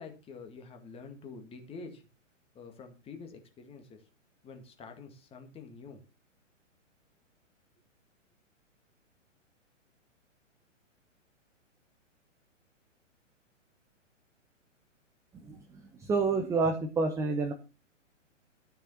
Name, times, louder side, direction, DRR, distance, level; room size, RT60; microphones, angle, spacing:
voice 1, 0.0-2.1 2.5-4.0 4.4-6.0, left 4 dB, 15° left, 5 dB, 2.0 m, -47 dB
voice 2, 16.0-17.5, right 4 dB, 10° right, 4 dB, 0.8 m, -28 dB
12.5 x 6.7 x 5.7 m, 0.32 s
figure-of-eight pair, 115°, 38 cm